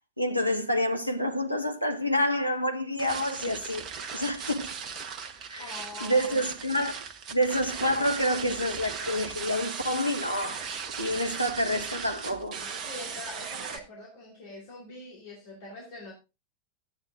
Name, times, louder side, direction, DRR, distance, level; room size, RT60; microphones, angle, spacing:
voice 1, 0.2-3.9 4.1-4.7 5.5-5.6 6.0-7.0 7.3-10.6 11.0-12.6, equal, 90° left, 1.5 m, -28 dB
sound 1, 3.0-13.8, right 6 dB, 35° right, 1.5 m, -38 dB
voice 2, 5.6-6.4 12.6-16.1, left 2 dB, 55° left, 4.1 m, -44 dB
12.5 x 9.3 x 3.8 m
figure-of-eight pair, 90°, 0 cm